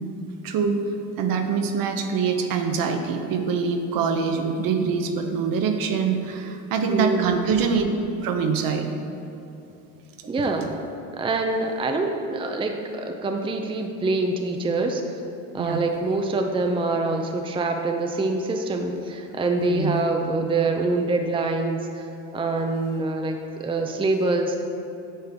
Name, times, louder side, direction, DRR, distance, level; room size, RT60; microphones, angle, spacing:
voice 1, 0.4-0.8 1.2-7.8 8.2-8.9 10.5-10.7 15.6-15.8 19.6-20.0, right 5 dB, 60° right, 5 dB, 0.9 m, -24 dB
voice 2, 6.9-7.5 10.3-10.7 11.1-15.2 15.5-24.6, right 2 dB, 15° right, 4 dB, 0.6 m, -25 dB
8.8 x 6.5 x 3.6 m, 2.8 s
supercardioid pair, 90°, 39 cm